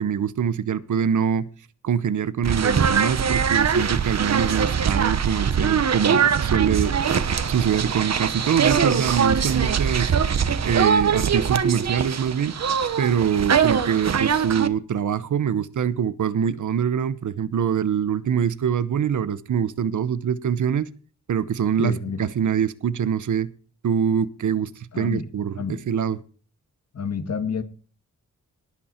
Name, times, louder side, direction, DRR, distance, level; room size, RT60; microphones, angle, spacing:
voice 1, 0.0-1.5 1.8-6.9 7.5-10.1 10.6-12.5 13.0-20.9 21.3-23.5 23.8-24.7 25.0-25.5 25.9-26.2, right 8 dB, 75° right, 0.9 m, -24 dB
sound 1, 2.4-14.7, right 7 dB, 60° right, 1.2 m, -22 dB
voice 2, 21.8-22.2 24.9-25.3 25.6-25.8 26.9-27.6, left 6 dB, 55° left, 2.0 m, -29 dB
18.5 x 8.5 x 4.4 m
wide cardioid pair, 120°, 30 cm